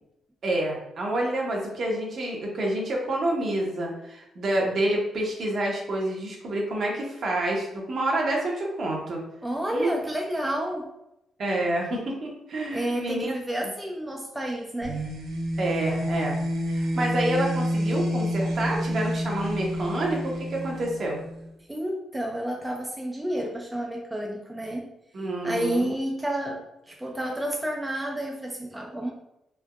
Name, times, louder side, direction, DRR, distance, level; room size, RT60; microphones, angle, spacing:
voice 1, 0.4-9.2 9.7-9.9 11.4-13.7 15.6-16.4 16.7-21.2 25.1-25.9, right 1 dB, 55° right, -1 dB, 0.8 m, -28 dB
voice 2, 9.4-10.9 12.7-15.0 21.7-24.9 25.4-29.1, right 1 dB, 10° right, 0 dB, 0.3 m, -30 dB
sound 1, 14.8-21.5, equal, 80° right, 0.5 m, -29 dB
3.3 x 2.0 x 2.3 m, 0.86 s
cardioid pair, 90°, 0 cm